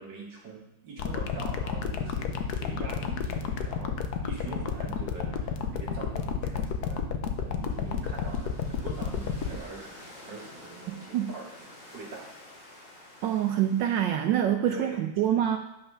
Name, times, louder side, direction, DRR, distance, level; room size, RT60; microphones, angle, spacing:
voice 1, 0.0-4.0 4.2-7.1 7.4-10.0 10.3-11.5 11.9-12.4 14.7-15.1, right 3 dB, 60° right, -2 dB, 2.3 m, -43 dB
sound 1, 1.0-9.6, left 8 dB, 65° left, 1.1 m, -30 dB
sound 2, 7.5-14.5, left 1 dB, 80° left, 4.9 m, -50 dB
voice 2, 10.9-11.3 13.2-15.6, right 10 dB, 75° right, 7 dB, 1.1 m, -26 dB
9.9 x 5.6 x 5.5 m, 0.86 s
omnidirectional pair, 2.3 m